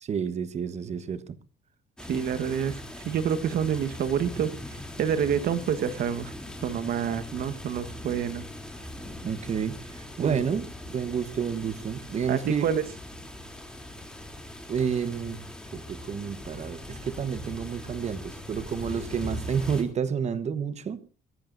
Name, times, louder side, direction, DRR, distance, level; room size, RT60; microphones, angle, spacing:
voice 1, 0.0-1.2 9.2-12.6 14.7-15.4 15.7-21.0, right 7 dB, 40° right, 1.2 m, -30 dB
sound 1, 2.0-19.8, left 1 dB, 5° left, 3.1 m, -41 dB
voice 2, 2.1-2.7 3.0-6.3 6.6-8.5 10.2-10.5 12.3-12.8, right 8 dB, 65° right, 1.4 m, -28 dB
23.0 x 14.5 x 2.6 m
cardioid pair, 110°, 17 cm